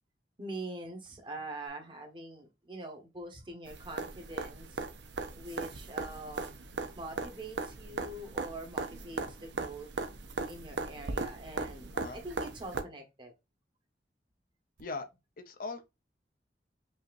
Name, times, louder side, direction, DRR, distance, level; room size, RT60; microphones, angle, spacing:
voice 1, 0.4-4.8 5.3-6.6 6.9-9.9 10.5-13.3, right 2 dB, 30° right, 1.1 m, -44 dB
sound 1, 3.7-12.8 14.8-14.9, right 3 dB, 80° right, 0.6 m, -38 dB
voice 2, 15.4-15.9, left 3 dB, 50° left, 0.6 m, -39 dB
5.5 x 2.8 x 2.5 m
head